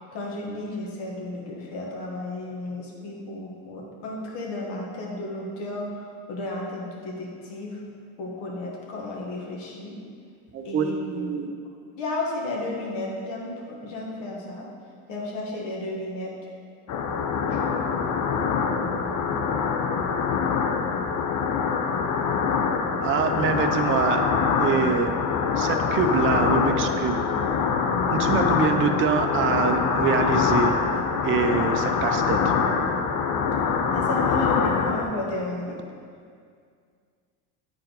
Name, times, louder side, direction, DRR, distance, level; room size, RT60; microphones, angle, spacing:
voice 1, 0.1-6.0 6.3-7.8 8.2-10.0 10.6-11.4 12.0-14.6 15.1-16.3 17.0-17.7 33.9-35.8, left 2 dB, 75° left, -2 dB, 1.6 m, -33 dB
voice 2, 10.5-11.5 23.0-24.2 24.6-25.1 25.6-27.2 28.0-30.7 31.2-32.5, right 5 dB, 30° right, 5 dB, 0.5 m, -25 dB
sound 1, 16.9-35.0, left 5 dB, 50° left, 0.6 m, -24 dB
8.6 x 4.3 x 3.9 m, 2.2 s
supercardioid pair, 110°, 42 cm